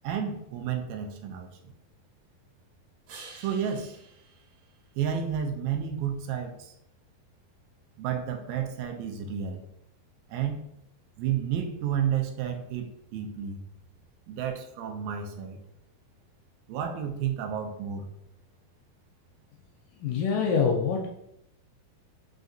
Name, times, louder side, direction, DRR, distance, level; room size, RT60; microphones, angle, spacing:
voice 1, 0.0-1.5 3.4-4.0 5.0-6.7 8.0-9.6 10.3-10.7 11.2-13.6 14.3-15.6 16.7-18.0, right 8 dB, 80° right, 3 dB, 2.2 m, -31 dB
sound 1, 3.1-5.6 11.4-15.4, right 4 dB, 65° right, 2.0 m, -54 dB
voice 2, 20.0-21.1, left 6 dB, 80° left, 1 dB, 1.9 m, -25 dB
5.7 x 2.5 x 2.6 m, 0.79 s
omnidirectional pair, 4.2 m